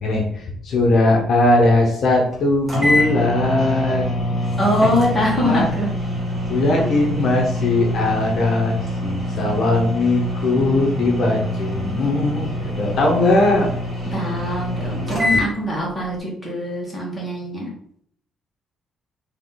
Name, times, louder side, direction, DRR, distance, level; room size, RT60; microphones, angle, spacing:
voice 1, 0.0-4.1 4.8-4.9 5.4-5.7 6.5-13.7, left 2 dB, 55° left, -1 dB, 0.8 m, -19 dB
sound 1, 2.3-2.4 2.7-15.5, equal, 25° right, 1.7 m, -25 dB
voice 2, 4.6-5.9 14.1-17.7, left 1 dB, 5° left, -5 dB, 1.8 m, -23 dB
3.7 x 2.8 x 3.9 m, 0.65 s
cardioid pair, 135°, 0 cm